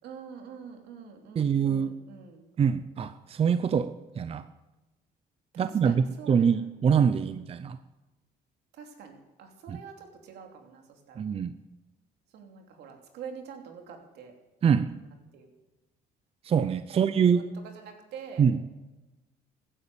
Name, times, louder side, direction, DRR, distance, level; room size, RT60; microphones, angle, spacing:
voice 1, 0.0-2.4 5.5-6.7 7.2-7.5 8.7-11.2 12.3-14.3 15.3-15.5 16.9-18.5, right 6 dB, 75° right, 3 dB, 2.9 m, -46 dB
voice 2, 1.4-2.0 2.6-4.5 5.6-7.8 9.7-9.8 11.2-11.5 14.6-15.0 16.4-17.4 18.4-18.6, right 7 dB, 35° right, 12 dB, 0.6 m, -25 dB
15.5 x 10.0 x 7.0 m, 1.1 s
cardioid pair, 110°, 17 cm